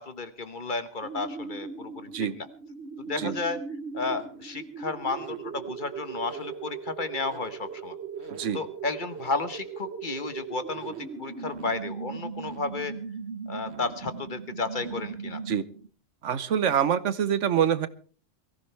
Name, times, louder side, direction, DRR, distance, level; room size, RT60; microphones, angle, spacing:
voice 1, 0.0-2.5 3.0-3.6 3.9-7.9 8.5-12.9 13.5-15.4, left 3 dB, 45° left, 11 dB, 1.3 m, -33 dB
sound 1, 1.0-15.9, right 5 dB, 65° right, 1.4 m, -39 dB
voice 2, 16.2-17.9, right 8 dB, 85° right, 15 dB, 1.2 m, -25 dB
22.5 x 15.0 x 3.3 m, 0.40 s
omnidirectional pair, 1.2 m